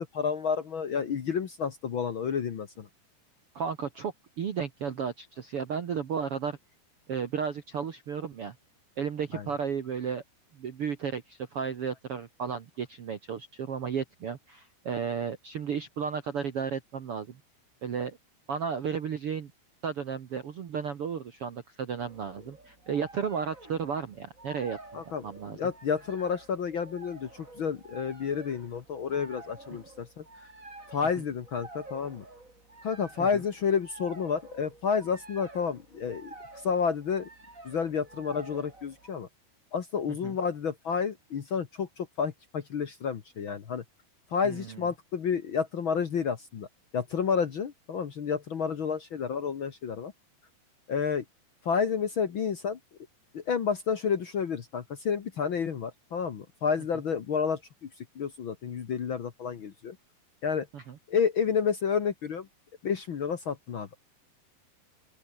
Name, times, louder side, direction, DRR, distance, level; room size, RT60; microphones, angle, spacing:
voice 1, 0.0-2.9 9.3-9.4 24.9-25.2 25.6-30.5 30.9-32.2 32.8-37.3 37.6-39.3 39.7-43.8 44.3-46.7 46.9-50.1 50.9-51.2 51.6-52.8 53.3-60.0 60.4-60.7 61.1-62.5 62.8-64.0, left 6 dB, 80° left, 1.1 m, -30 dB
voice 2, 3.5-6.6 7.1-8.5 9.0-10.2 10.5-17.4 17.8-18.2 18.5-19.5 19.8-25.6 33.2-33.3 40.2-40.4 44.4-44.8 60.7-61.0, right 6 dB, 65° right, 1.4 m, -33 dB
sound 1, 22.0-39.1, right 2 dB, 20° right, 5.9 m, -50 dB
open air
omnidirectional pair, 4.8 m